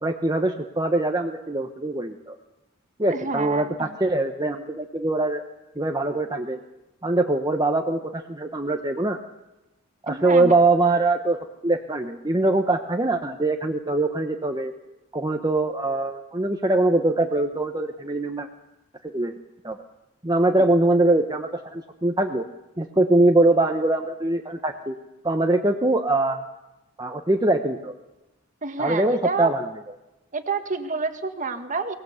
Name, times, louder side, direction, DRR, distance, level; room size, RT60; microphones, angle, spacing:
voice 1, 0.0-2.4 3.0-5.4 5.8-6.6 7.0-9.2 10.0-11.4 11.6-14.7 15.1-18.5 19.1-19.3 19.6-19.8 20.2-22.4 22.8-24.9 25.2-26.4 27.0-27.9 28.8-29.6, right 2 dB, 20° right, 3 dB, 1.1 m, -22 dB
voice 2, 3.1-3.9 10.1-10.5 28.6-29.5 30.3-32.0, right 4 dB, 35° right, 8 dB, 1.7 m, -28 dB
23.0 x 19.5 x 8.1 m, 0.99 s
head